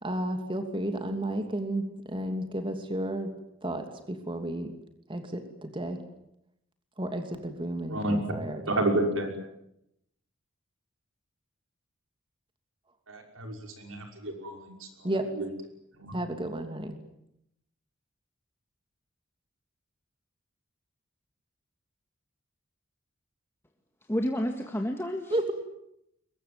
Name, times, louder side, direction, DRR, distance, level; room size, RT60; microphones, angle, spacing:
voice 1, 0.0-3.3 3.6-4.7 5.1-6.0 7.0-8.9 15.0-15.3 16.1-17.0 25.3-25.4, right 1 dB, 25° right, 6 dB, 2.8 m, -32 dB
voice 2, 7.9-8.2 8.7-9.3 13.1-14.7 15.4-15.5 16.0-16.2, right 1 dB, 85° right, 3 dB, 5.8 m, -30 dB
voice 3, 24.1-25.5, equal, 10° left, 3 dB, 1.9 m, -30 dB
23.0 x 21.5 x 9.6 m, 0.79 s
head